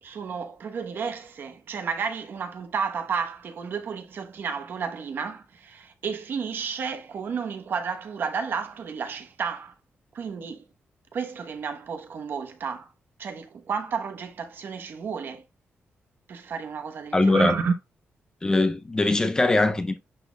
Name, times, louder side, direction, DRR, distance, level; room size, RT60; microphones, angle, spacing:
voice 1, 0.0-9.7 10.1-10.6 11.1-12.9 13.2-15.4 16.3-17.7, right 6 dB, 55° right, 0.9 m, -31 dB
voice 2, 17.1-17.5 18.4-20.0, left 2 dB, 15° left, 0.4 m, -21 dB
10.5 x 4.1 x 2.2 m
wide cardioid pair, 175°, 4 cm